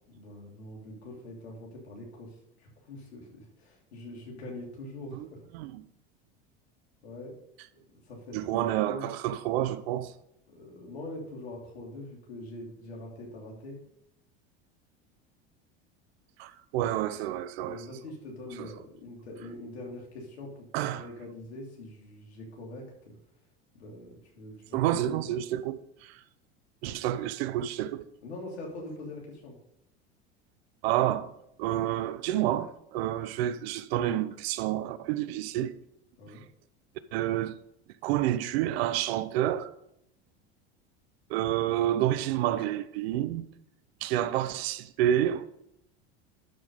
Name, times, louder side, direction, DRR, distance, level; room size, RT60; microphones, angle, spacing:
voice 1, 0.1-5.4 7.0-7.3 7.7-9.1 10.5-13.8 17.6-23.2 23.7-25.4 28.2-29.6 36.2-36.4, left 1 dB, 90° left, 3.1 m, -43 dB
voice 2, 8.3-10.1 16.4-17.8 18.6-18.7 20.7-21.1 24.7-26.2 26.8-28.0 30.8-31.3 31.6-35.7 37.1-37.5 38.0-39.7 41.3-43.5 44.0-45.5, right 12 dB, 75° right, 0.8 m, -29 dB
12.0 x 4.8 x 5.3 m
hypercardioid pair, 90°, 31 cm